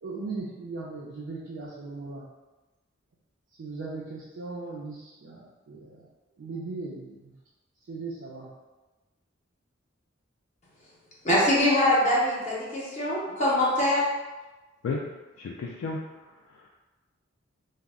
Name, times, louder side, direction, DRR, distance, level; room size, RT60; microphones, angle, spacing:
voice 1, 0.0-2.2 3.6-6.1 6.4-7.3 7.9-8.5, right 3 dB, 65° right, -6 dB, 0.4 m, -38 dB
voice 2, 11.2-14.0, left 1 dB, 35° left, -6 dB, 0.6 m, -23 dB
voice 3, 15.4-16.7, left 3 dB, 75° left, -2 dB, 0.3 m, -34 dB
2.3 x 2.0 x 3.5 m, 1.1 s
head